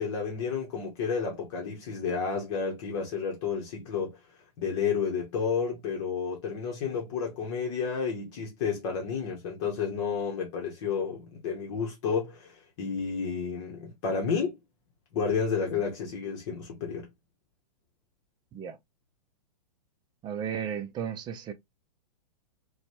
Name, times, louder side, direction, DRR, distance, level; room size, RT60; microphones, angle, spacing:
voice 1, 0.0-4.2 4.6-14.6 15.1-17.1, left 6 dB, 50° left, 1.0 m, -31 dB
voice 2, 20.2-21.5, right 8 dB, 20° right, 0.4 m, -34 dB
2.9 x 2.2 x 2.5 m
hypercardioid pair, 120°, 20 cm